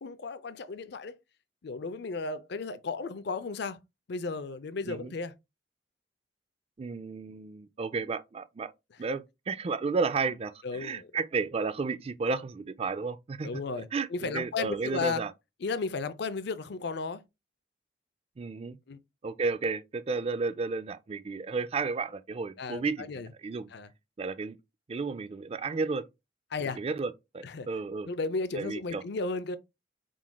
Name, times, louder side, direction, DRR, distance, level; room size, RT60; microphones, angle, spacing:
voice 1, 0.0-1.2 1.6-3.8 4.1-5.3 10.6-11.1 13.4-15.2 15.6-17.2 18.9-19.0 22.6-23.3 23.7-23.9 26.5-26.8 27.4-27.7 28.1-29.6, left 4 dB, 65° left, 0.5 m, -34 dB
voice 2, 6.8-8.7 9.0-13.5 13.9-15.3 18.4-18.8 19.2-23.7 24.2-24.6 24.9-26.1 26.7-28.1 28.5-29.0, right 4 dB, 35° right, 0.4 m, -32 dB
4.7 x 3.8 x 2.2 m
head